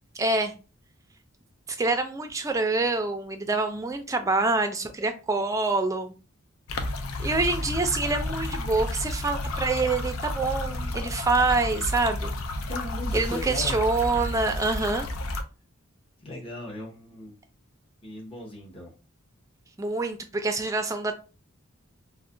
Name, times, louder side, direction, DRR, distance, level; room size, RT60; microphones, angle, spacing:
voice 1, 0.2-0.5 1.7-6.1 7.2-12.3 13.1-15.1 19.8-21.2, right 3 dB, 15° right, 0.3 m, -26 dB
sound 1, 6.7-15.4, left 1 dB, 80° left, 0.4 m, -31 dB
voice 2, 12.7-13.8 16.2-17.3 18.0-18.9, left 1 dB, 25° left, 0.8 m, -37 dB
2.3 x 2.1 x 3.7 m
head